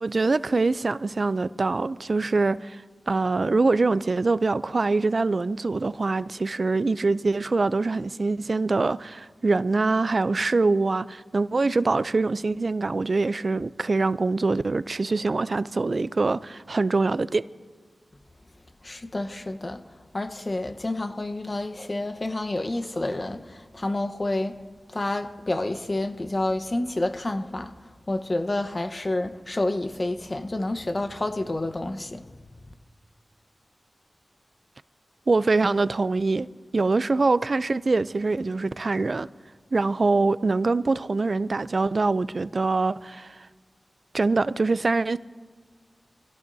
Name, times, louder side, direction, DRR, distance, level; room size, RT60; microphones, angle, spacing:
voice 1, 0.0-17.4 35.3-36.5 36.7-39.3 39.7-43.4 44.1-45.2, right 3 dB, 55° right, 0.4 m, -24 dB
voice 2, 18.8-19.8 20.1-24.6 24.9-27.7 28.1-32.3, left 2 dB, 40° left, 1.0 m, -29 dB
25.0 x 16.5 x 2.7 m
cardioid pair, 40°, 0 cm